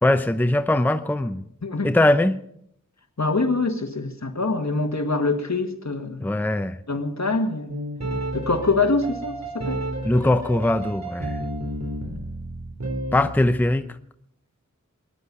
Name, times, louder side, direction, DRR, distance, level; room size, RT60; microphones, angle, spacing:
voice 1, 0.0-1.4 1.8-2.4 6.2-6.8 10.0-11.4 13.1-13.9, left 1 dB, 5° left, 10 dB, 0.7 m, -21 dB
voice 2, 1.6-1.9 3.2-6.3 6.9-7.8 8.3-9.8, left 3 dB, 60° left, 6 dB, 1.8 m, -24 dB
sound 1, 7.7-13.7, right 1 dB, 55° right, 3.9 m, -31 dB
21.5 x 10.0 x 5.4 m, 0.72 s
wide cardioid pair, 45°, 32 cm